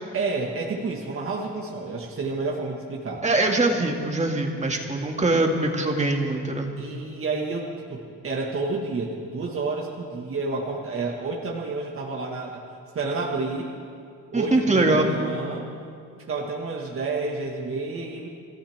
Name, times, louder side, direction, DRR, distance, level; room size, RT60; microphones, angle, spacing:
voice 1, 0.1-3.2 6.8-12.6 12.9-13.7 14.3-15.7 16.3-18.3, right 3 dB, 45° right, -1 dB, 1.9 m, -30 dB
voice 2, 3.2-6.7 14.3-15.1, right 2 dB, 25° right, 2 dB, 2.3 m, -23 dB
28.5 x 14.0 x 3.6 m, 2.4 s
cardioid pair, 90°, 30 cm